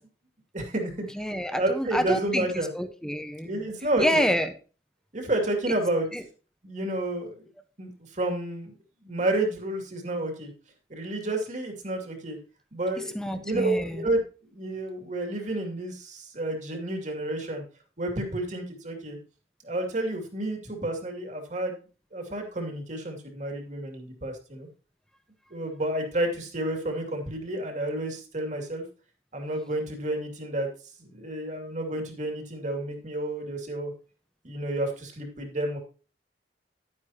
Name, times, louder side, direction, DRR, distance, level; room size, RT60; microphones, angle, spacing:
voice 1, 0.5-0.9 1.5-2.7 3.4-4.3 5.1-6.1 6.6-7.5 7.8-8.7 9.0-10.5 10.9-12.4 12.7-14.2 14.5-17.6 18.0-19.2 19.6-21.8 22.1-24.7 25.5-28.8 29.3-30.7 31.0-33.9 34.4-35.8, right 1 dB, 45° right, 3 dB, 2.4 m, -30 dB
voice 2, 1.1-3.5 4.0-4.5 6.1-6.2 13.1-14.0, equal, 5° left, 8 dB, 1.0 m, -28 dB
10.5 x 9.7 x 2.9 m, 0.35 s
head